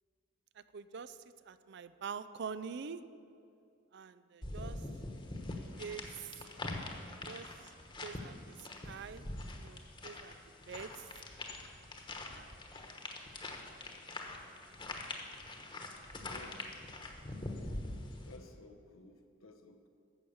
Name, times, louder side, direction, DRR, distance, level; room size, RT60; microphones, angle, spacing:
voice 1, 0.6-1.2 1.4-3.0 3.9-4.8 5.8-6.4 7.3-7.7 8.0-9.3 9.6-10.4 10.7-11.1 12.3-12.5, right 6 dB, 55° right, 14 dB, 0.4 m, -45 dB
sound 1, 4.4-18.4, left 2 dB, 25° left, 1.2 m, -44 dB
voice 2, 5.1-5.6 16.3-16.7 18.2-19.9, left 2 dB, 90° left, 5 dB, 1.1 m, -56 dB
11.5 x 7.8 x 7.1 m, 2.4 s
head